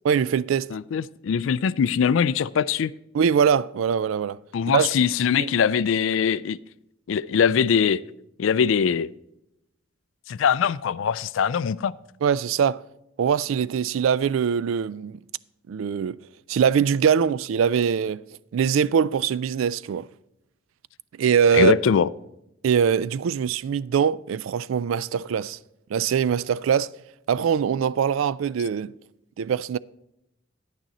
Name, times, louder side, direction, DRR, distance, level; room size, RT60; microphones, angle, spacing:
voice 1, 0.0-0.7 3.1-4.4 4.7-4.9 5.3-5.5 12.2-12.8 13.2-15.2 15.7-16.2 16.5-18.2 18.5-20.1 21.2-21.8 22.6-25.6 25.9-26.9 27.3-28.9 29.4-29.8, right 7 dB, 80° right, 0.3 m, -22 dB
voice 2, 0.7-2.9 4.5-6.6 7.1-8.0 8.4-9.1 10.3-11.9 21.5-22.1, left 7 dB, 75° left, 0.4 m, -22 dB
10.0 x 9.0 x 4.1 m
head